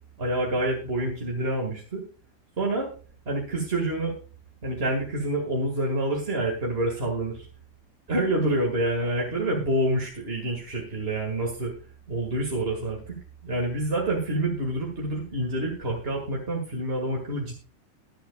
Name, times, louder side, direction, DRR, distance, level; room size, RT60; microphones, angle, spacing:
voice 1, 0.2-2.0 2.6-2.9 3.2-4.1 4.6-7.5 8.1-11.7 12.1-17.6, right 1 dB, 25° right, -1 dB, 1.6 m, -27 dB
22.0 x 7.9 x 2.3 m, 0.38 s
omnidirectional pair, 3.5 m